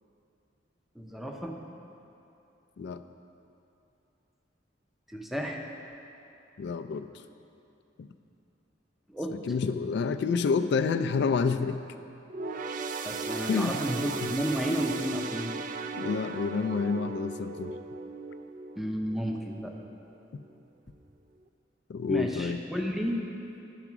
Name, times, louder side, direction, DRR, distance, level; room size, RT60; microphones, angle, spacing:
voice 1, 1.0-1.5 5.1-5.6 9.1-9.3 13.0-15.5 18.8-19.7 22.1-23.3, equal, ahead, 1 dB, 0.6 m, -32 dB
voice 2, 6.6-7.1 8.0-8.1 9.3-11.8 13.5-13.9 14.2-14.3 15.9-17.8 20.3-20.4 21.9-22.6, left 5 dB, 65° left, 9 dB, 0.3 m, -29 dB
sound 1, 12.3-20.0 20.4-20.6 21.5-21.6, right 4 dB, 45° right, 0.3 m, -37 dB
11.0 x 4.7 x 6.0 m, 2.8 s
head